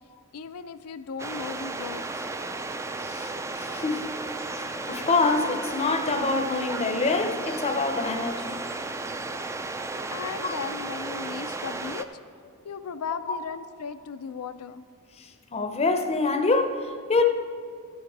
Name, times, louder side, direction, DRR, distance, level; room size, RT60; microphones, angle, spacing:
voice 1, 0.3-2.3 10.1-12.1 12.6-14.9, left 6 dB, 85° left, 0.5 m, -36 dB
sound 1, 1.2-12.1, right 3 dB, 15° right, 0.3 m, -34 dB
voice 2, 3.0-4.1 4.6-8.7 10.4-10.6 15.2-17.2, left 3 dB, 30° left, 0.6 m, -26 dB
14.0 x 7.2 x 4.7 m
head